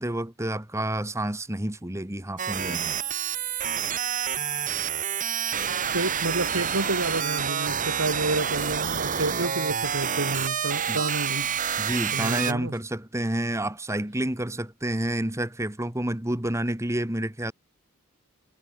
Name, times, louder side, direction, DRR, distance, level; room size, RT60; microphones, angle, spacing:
voice 1, 0.0-3.0 10.9-11.0 11.8-17.5, right 1 dB, 15° right, 1.7 m, -29 dB
sound 1, 2.4-12.5, right 8 dB, 35° right, 1.7 m, -28 dB
voice 2, 5.9-11.5 12.1-12.7, right 2 dB, 70° right, 3.0 m, -29 dB
head